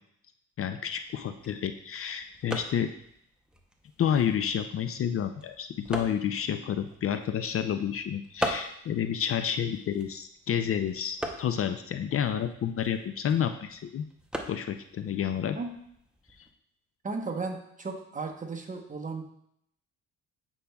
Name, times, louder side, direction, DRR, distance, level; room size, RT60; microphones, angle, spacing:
voice 1, 0.6-2.9 4.0-14.0 14.5-15.6, left 8 dB, 50° left, 8 dB, 0.4 m, -30 dB
sound 1, 1.0-16.5, equal, 5° right, 0.7 m, -42 dB
voice 2, 17.0-19.2, right 4 dB, 25° right, 3 dB, 0.9 m, -35 dB
8.4 x 5.3 x 2.3 m, 0.72 s
cardioid pair, 90°, 30 cm